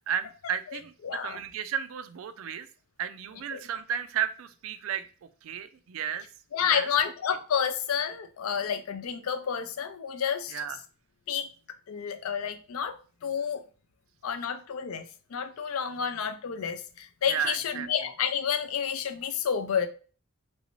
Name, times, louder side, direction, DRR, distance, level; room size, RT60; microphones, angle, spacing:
voice 1, 0.0-2.7 3.0-6.3 6.6-6.9 10.5-10.8 17.3-17.9, right 8 dB, 75° right, 0.3 m, -33 dB
voice 2, 1.0-1.4 3.5-3.6 6.5-10.6 11.3-11.5 11.9-13.0 13.2-13.6 14.2-15.0 15.3-19.9, left 7 dB, 85° left, 0.4 m, -30 dB
3.1 x 2.6 x 3.0 m
head